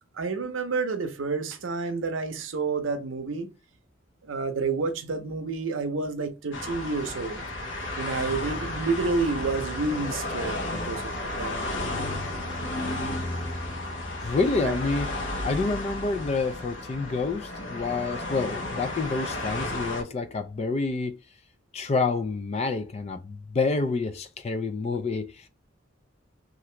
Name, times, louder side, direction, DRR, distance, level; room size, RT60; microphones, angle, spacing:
voice 1, 0.1-3.5 4.2-7.4 8.0-11.7 14.6-14.8, right 4 dB, 85° right, 0.6 m, -29 dB
sound 1, 6.5-20.0, left 2 dB, 65° left, 0.7 m, -33 dB
voice 2, 14.2-15.1 15.4-21.2 21.7-25.5, left 3 dB, 35° left, 0.3 m, -28 dB
2.8 x 2.5 x 3.1 m
head